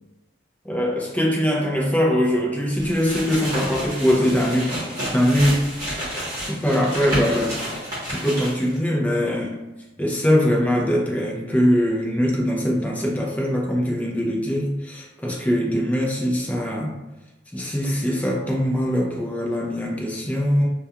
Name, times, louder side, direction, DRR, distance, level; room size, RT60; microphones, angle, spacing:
voice 1, 0.6-5.6 6.1-7.6 8.1-9.6 10.0-17.0 17.5-20.7, equal, 10° left, -2 dB, 0.4 m, -22 dB
sound 1, 2.8-8.8, equal, 20° right, 0.9 m, -30 dB
2.2 x 2.2 x 2.7 m, 1.1 s
head